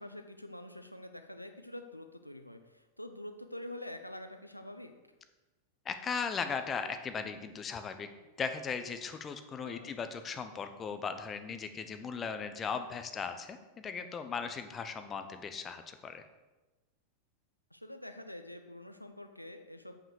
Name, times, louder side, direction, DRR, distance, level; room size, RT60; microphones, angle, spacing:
voice 1, 0.0-4.9 9.6-9.9 17.7-20.0, left 1 dB, 90° left, 7 dB, 0.6 m, -46 dB
voice 2, 5.9-8.1 8.4-16.2, left 5 dB, 25° left, 8 dB, 0.7 m, -38 dB
7.4 x 5.7 x 6.3 m, 1.1 s
figure-of-eight pair, 90°, 0 cm